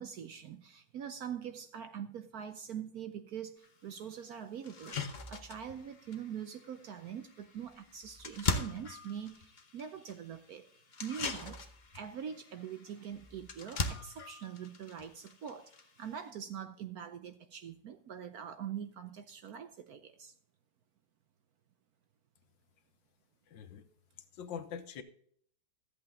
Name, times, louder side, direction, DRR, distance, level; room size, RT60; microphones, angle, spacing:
voice 1, 0.0-10.6 11.0-11.6 11.9-20.3, right 8 dB, 65° right, 1.0 m, -43 dB
sound 1, 3.6-3.7 4.2-4.3 4.6-16.3, left 3 dB, 40° left, 0.6 m, -41 dB
voice 2, 23.5-23.9 24.3-25.0, left 7 dB, 75° left, 1.6 m, -43 dB
13.5 x 8.3 x 3.7 m
omnidirectional pair, 2.1 m